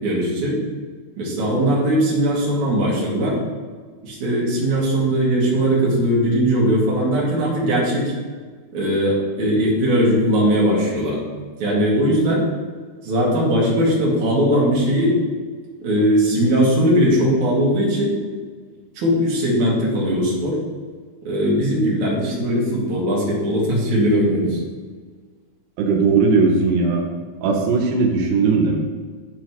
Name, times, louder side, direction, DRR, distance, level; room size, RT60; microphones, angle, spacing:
voice 1, 0.0-0.6 1.2-3.4 4.0-8.1 8.7-11.2 11.6-12.4 13.0-15.2 15.8-18.2 19.0-20.6 21.2-24.6, equal, 50° right, -5 dB, 3.2 m, -19 dB
voice 2, 25.8-27.0 27.4-28.8, right 4 dB, 90° right, 0 dB, 3.0 m, -18 dB
12.5 x 4.9 x 3.0 m, 1.5 s
omnidirectional pair, 4.6 m